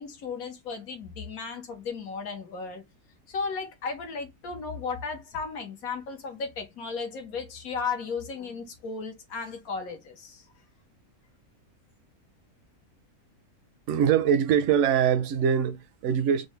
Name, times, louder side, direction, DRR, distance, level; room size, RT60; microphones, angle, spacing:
voice 1, 0.0-2.8 3.3-10.4, left 5 dB, 80° left, 1.5 m, -35 dB
voice 2, 13.9-16.5, right 8 dB, 65° right, 0.8 m, -23 dB
5.1 x 2.2 x 3.2 m
omnidirectional pair, 1.5 m